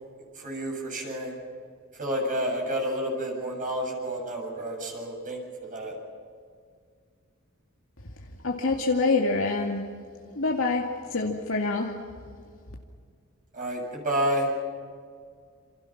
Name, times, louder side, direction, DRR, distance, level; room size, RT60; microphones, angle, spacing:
voice 1, 0.4-1.4 1.9-6.0 13.5-14.5, right 1 dB, 40° right, 0 dB, 7.5 m, -30 dB
voice 2, 8.4-9.9 10.4-12.0, left 3 dB, 70° left, 0 dB, 2.2 m, -26 dB
28.0 x 28.0 x 6.0 m, 2.1 s
head